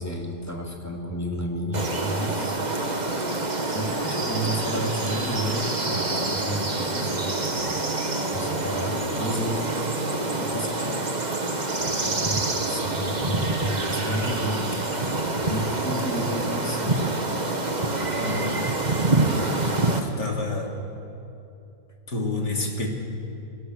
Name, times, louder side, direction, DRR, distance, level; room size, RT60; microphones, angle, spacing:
voice 1, 0.0-2.6 3.7-7.4 8.3-9.6 9.9-10.0 10.4-11.0 11.5-11.7 12.0-14.8 15.4-17.0, equal, 10° left, 1 dB, 2.7 m, -31 dB
sound 1, 1.7-20.0, right 2 dB, 25° right, 1.6 m, -26 dB
voice 2, 18.2-18.7 19.9-20.8 22.1-22.9, left 2 dB, 75° left, 0 dB, 3.6 m, -29 dB
29.0 x 22.0 x 6.5 m, 2.8 s
omnidirectional pair, 1.8 m